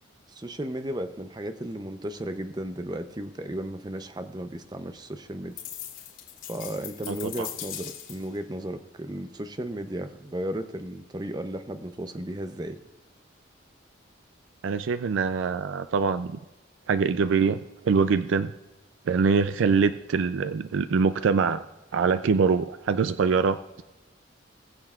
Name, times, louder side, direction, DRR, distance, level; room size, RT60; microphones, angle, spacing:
voice 1, 0.3-5.6 6.5-12.8, right 1 dB, 20° right, 9 dB, 0.6 m, -34 dB
sound 1, 5.6-8.4, left 10 dB, 85° left, 2.8 m, -39 dB
voice 2, 7.1-7.5 14.6-16.4 16.9-18.5 19.1-21.6 21.9-23.8, right 5 dB, 75° right, 11 dB, 0.4 m, -24 dB
20.0 x 7.8 x 2.4 m, 1.0 s
head